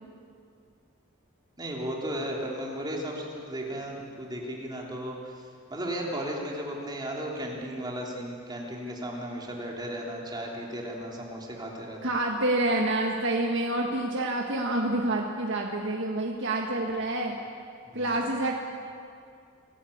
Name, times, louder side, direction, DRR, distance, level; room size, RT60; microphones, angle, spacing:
voice 1, 1.6-5.4 5.7-12.1 17.9-18.2, equal, 20° right, -2 dB, 3.4 m, -35 dB
voice 2, 12.0-17.4 17.9-18.6, right 1 dB, 60° right, 0 dB, 1.6 m, -27 dB
25.0 x 14.0 x 8.7 m, 2.3 s
head